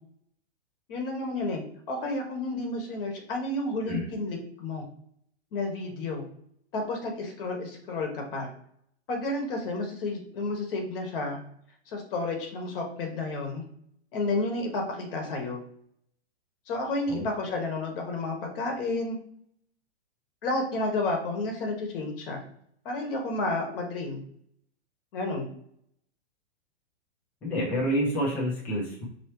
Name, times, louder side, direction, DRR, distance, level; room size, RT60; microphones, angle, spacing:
voice 1, 0.9-1.6 1.9-4.9 5.5-6.2 6.7-8.5 9.1-11.4 11.9-13.6 14.1-15.6 16.7-19.2 20.4-22.4 22.8-24.2 25.1-25.5, left 2 dB, 50° left, 2 dB, 1.0 m, -31 dB
voice 2, 27.4-29.0, equal, 5° left, -5 dB, 0.3 m, -28 dB
5.5 x 3.0 x 3.0 m, 0.68 s
hypercardioid pair, 155°, 35 cm